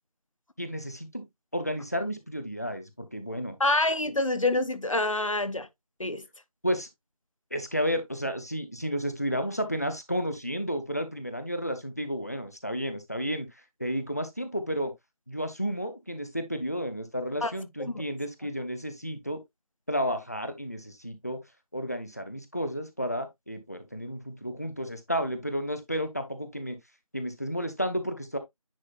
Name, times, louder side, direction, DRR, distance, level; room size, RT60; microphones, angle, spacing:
voice 1, 0.6-1.2 1.5-3.6 6.6-6.9 7.5-13.5 13.8-14.9 15.3-19.4 19.9-21.4 21.7-26.8 27.1-28.4, equal, 25° left, 0.7 m, -32 dB
voice 2, 3.6-5.7 6.0-6.3 17.4-17.5 17.8-18.0, left 2 dB, 60° left, 0.9 m, -26 dB
9.7 x 4.2 x 2.4 m
figure-of-eight pair, 175°, 19 cm